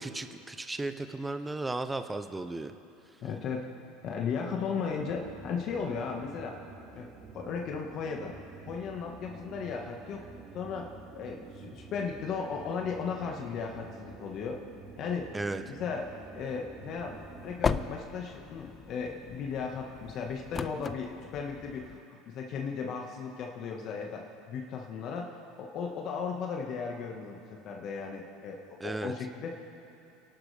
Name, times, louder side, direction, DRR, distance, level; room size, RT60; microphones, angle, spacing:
voice 1, 0.0-2.7 3.1-3.2 15.3-15.6 28.8-29.1, right 2 dB, 15° right, 9 dB, 0.7 m, -35 dB
voice 2, 3.2-3.7 4.0-6.6 6.9-7.1 7.3-8.3 8.7-10.2 10.5-10.9 11.2-14.6 15.0-15.3 15.7-22.0 22.3-29.5, left 5 dB, 50° left, 1 dB, 1.5 m, -36 dB
sound 1, 4.6-18.3, right 4 dB, 35° right, 1.4 m, -49 dB
sound 2, 17.0-22.0, left 5 dB, 25° left, 0.5 m, -37 dB
29.5 x 11.5 x 3.4 m, 2.7 s
supercardioid pair, 105°, 0 cm